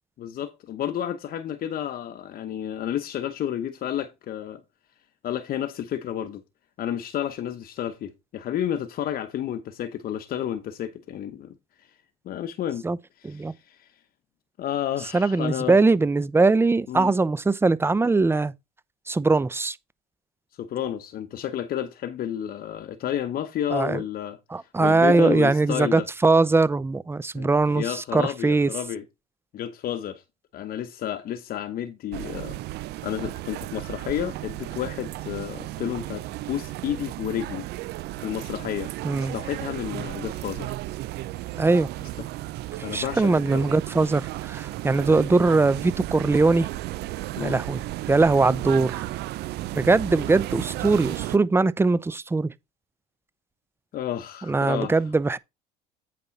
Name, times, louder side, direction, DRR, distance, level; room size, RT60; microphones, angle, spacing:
voice 1, 0.2-4.6 5.2-6.4 6.8-11.9 12.2-12.8 13.2-13.9 14.6-15.8 16.9-17.1 20.6-26.1 27.3-29.0 29.5-30.2 30.5-32.6 33.0-37.6 38.2-40.8 42.2-42.3 42.8-43.7 47.4-47.6 53.9-55.0, left 10 dB, 55° left, 1.0 m, -31 dB
voice 2, 15.1-18.5 19.1-19.8 23.7-24.0 24.5-28.7 39.0-39.3 41.6-41.9 42.9-46.7 47.4-47.8 48.1-49.0 49.7-52.5 54.5-55.4, right 3 dB, 15° right, 0.6 m, -21 dB
sound 1, 32.1-51.4, right 16 dB, 65° right, 0.6 m, -34 dB
8.5 x 5.8 x 4.1 m
supercardioid pair, 85°, 18 cm